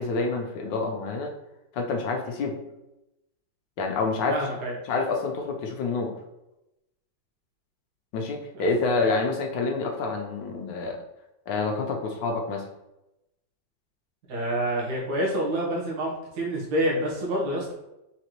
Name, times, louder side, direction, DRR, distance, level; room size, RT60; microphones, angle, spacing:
voice 1, 0.0-1.3 1.7-2.6 3.8-4.4 4.9-6.1 8.1-11.0 11.5-12.6, left 3 dB, 80° left, 1 dB, 1.4 m, -27 dB
voice 2, 4.3-4.7 8.5-8.6 9.0-9.2 14.3-17.7, right 1 dB, 60° right, -3 dB, 1.7 m, -27 dB
4.1 x 4.0 x 3.0 m, 0.92 s
omnidirectional pair, 2.0 m